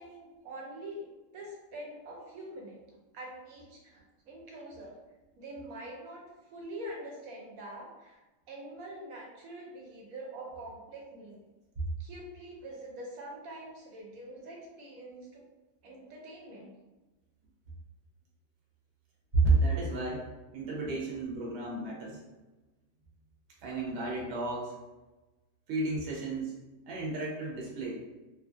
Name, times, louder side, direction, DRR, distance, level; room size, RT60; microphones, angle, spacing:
voice 1, 0.0-2.8 3.1-4.9 5.4-6.2 6.5-8.2 8.5-11.4 12.0-15.5 15.8-16.7, right 1 dB, 75° right, -2 dB, 1.0 m, -45 dB
voice 2, 19.3-20.2 20.5-22.2 23.6-24.7 25.7-26.6 26.8-28.0, right 3 dB, 50° right, -4 dB, 0.8 m, -31 dB
2.8 x 2.3 x 2.5 m, 1.1 s
omnidirectional pair, 1.5 m